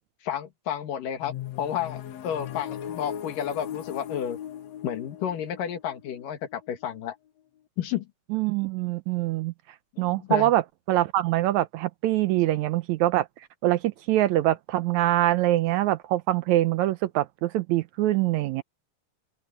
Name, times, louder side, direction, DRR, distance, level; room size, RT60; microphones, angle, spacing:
voice 1, 0.3-4.4 4.8-7.2 7.8-8.1 9.9-10.5, left 9 dB, 85° left, 3.4 m, -31 dB
sound 1, 1.2-7.0, left 10 dB, 65° left, 2.1 m, -39 dB
voice 2, 8.3-9.5 10.0-10.6 10.9-13.3 13.6-18.6, right 15 dB, 80° right, 1.8 m, -24 dB
open air
omnidirectional pair, 3.7 m